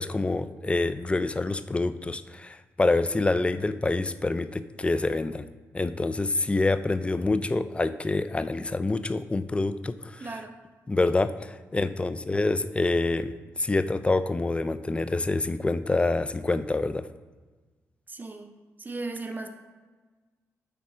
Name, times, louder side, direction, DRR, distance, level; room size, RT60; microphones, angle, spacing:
voice 1, 0.0-5.5 5.7-10.2 10.9-17.1, left 2 dB, 20° left, 12 dB, 0.4 m, -26 dB
voice 2, 10.2-10.6 18.1-18.5 18.8-19.5, right 3 dB, 30° right, 6 dB, 0.7 m, -36 dB
8.3 x 3.6 x 4.9 m, 1.3 s
cardioid pair, 75°, 6 cm